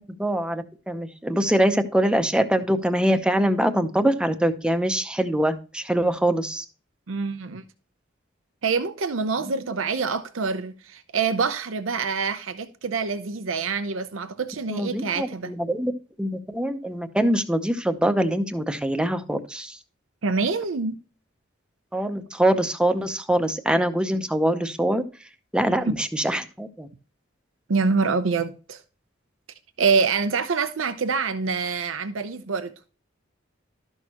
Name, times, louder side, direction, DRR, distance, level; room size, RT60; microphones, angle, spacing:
voice 1, 0.2-6.6 14.7-15.9 16.2-19.8 21.9-25.0 25.5-26.9, right 1 dB, 5° right, 0.7 m, -23 dB
voice 2, 7.1-7.6 8.6-15.5 20.2-21.0 25.8-25.9 27.7-28.8 29.8-32.7, right 4 dB, 85° right, 0.7 m, -25 dB
12.5 x 6.4 x 2.9 m
head